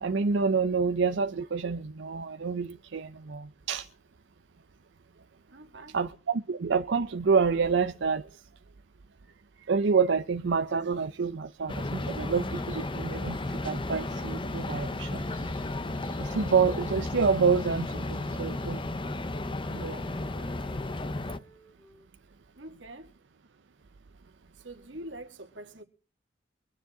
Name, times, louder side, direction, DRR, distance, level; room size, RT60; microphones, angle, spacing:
voice 1, 0.0-3.9 5.9-8.3 9.7-15.5 16.2-18.8 19.7-20.0 20.3-20.4, right 5 dB, 70° right, 0.6 m, -28 dB
voice 2, 5.5-6.0 22.5-23.1 24.5-25.8, right 1 dB, 90° right, 2.3 m, -44 dB
sound 1, 11.7-21.4, left 2 dB, 25° left, 0.7 m, -33 dB
sound 2, 12.4-18.9, left 1 dB, 45° left, 3.0 m, -56 dB
Wind instrument woodwind instrument, 18.5-22.1, equal, 10° left, 2.3 m, -56 dB
24.0 x 9.8 x 3.8 m
head